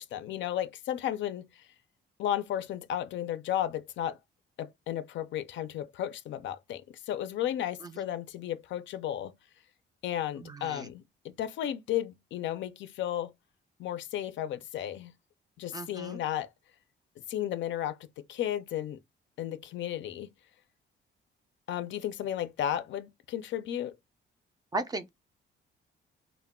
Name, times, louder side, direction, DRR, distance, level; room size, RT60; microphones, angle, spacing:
voice 1, 0.0-1.5 2.2-4.2 4.6-6.8 7.1-9.4 10.0-13.3 13.8-15.1 15.6-16.5 17.3-18.0 18.3-19.0 19.4-20.3 21.7-23.9, left 11 dB, 70° left, 0.4 m, -33 dB
voice 2, 10.4-10.9 15.7-16.2 24.7-25.1, right 2 dB, 20° right, 0.4 m, -36 dB
2.2 x 2.1 x 3.5 m
cardioid pair, 145°, 20 cm